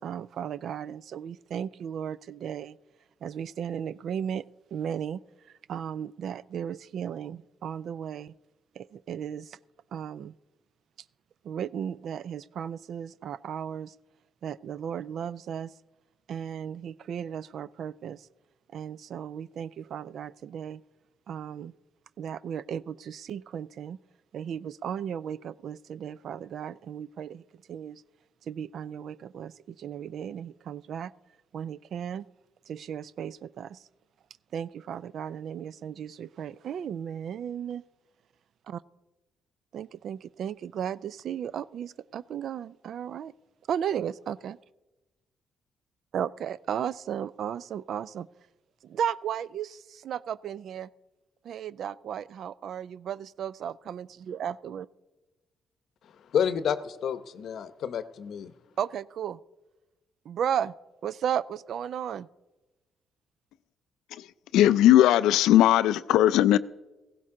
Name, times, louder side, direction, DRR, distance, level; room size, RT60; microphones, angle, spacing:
voice 1, 0.0-2.8 3.2-4.5 4.7-5.2 5.7-8.3 8.8-9.6 9.9-10.3 11.4-13.9 14.4-15.7 16.3-18.3 18.7-20.8 21.3-21.7 22.2-24.0 24.3-27.4 27.7-28.0 28.5-31.1 31.5-32.2 32.7-33.8 34.5-37.8 38.7-38.8 39.7-43.3 43.7-44.6 46.1-48.3 48.8-50.9 51.4-54.9 58.8-59.4 60.3-60.7 61.0-62.3, right 8 dB, 65° right, 0.3 m, -35 dB
voice 2, 56.3-58.5, left 8 dB, 65° left, 0.7 m, -29 dB
voice 3, 64.5-66.6, left 13 dB, 90° left, 0.4 m, -18 dB
16.5 x 15.5 x 3.7 m
cardioid pair, 90°, 0 cm